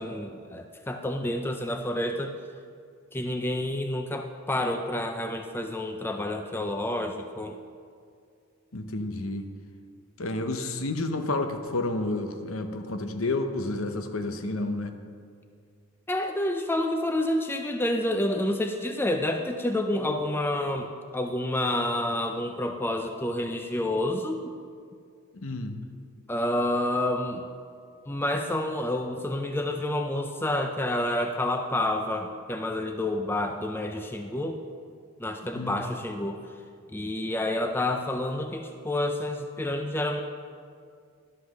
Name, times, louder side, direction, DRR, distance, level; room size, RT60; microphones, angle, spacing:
voice 1, 0.0-2.3 3.1-7.6 16.1-24.5 26.3-27.4 28.1-34.6 35.2-36.4 36.9-40.2, left 1 dB, 10° left, 5 dB, 0.4 m, -29 dB
voice 2, 8.7-9.5 10.2-14.9 25.3-25.8 35.5-35.8, left 2 dB, 65° left, 7 dB, 0.8 m, -30 dB
11.5 x 5.8 x 6.4 m, 2.2 s
head